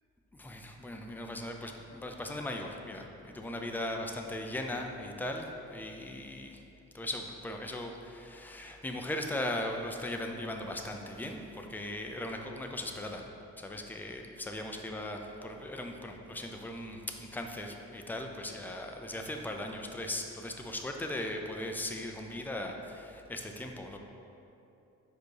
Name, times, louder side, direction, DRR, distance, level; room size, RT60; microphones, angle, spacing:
voice 1, 0.4-6.6 6.9-13.3 13.6-24.0, left 1 dB, 5° left, 3 dB, 0.5 m, -38 dB
5.2 x 4.9 x 4.7 m, 2.9 s
cardioid pair, 90°, 30 cm